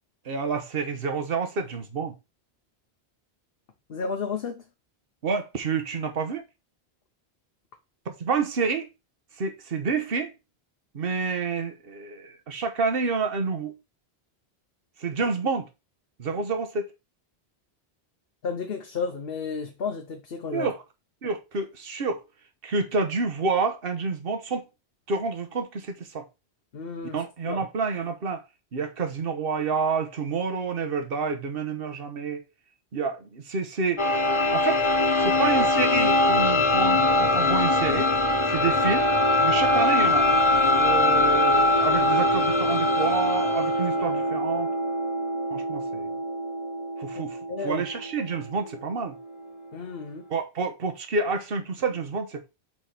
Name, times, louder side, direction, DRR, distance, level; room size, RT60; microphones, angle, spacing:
voice 1, 0.2-2.1 5.2-6.4 8.1-8.9 9.4-10.3 10.9-13.8 15.0-15.7 16.2-16.9 20.5-20.8 21.2-22.2 22.6-24.7 25.1-26.3 27.1-28.4 28.7-32.4 32.9-34.2 34.5-34.8 35.2-38.1 38.5-39.1 39.4-40.4 40.8-44.7 45.5-46.1 47.0-47.4 47.6-49.2 50.3-52.5, right 4 dB, 60° right, 1.3 m, -28 dB
voice 2, 3.9-4.6 18.4-20.7 26.7-27.2 27.5-27.6 47.5-47.8 49.7-50.3, left 5 dB, 65° left, 1.1 m, -32 dB
sound 1, 34.0-49.6, left 2 dB, 30° left, 0.8 m, -23 dB
5.0 x 4.7 x 5.8 m
omnidirectional pair, 1.1 m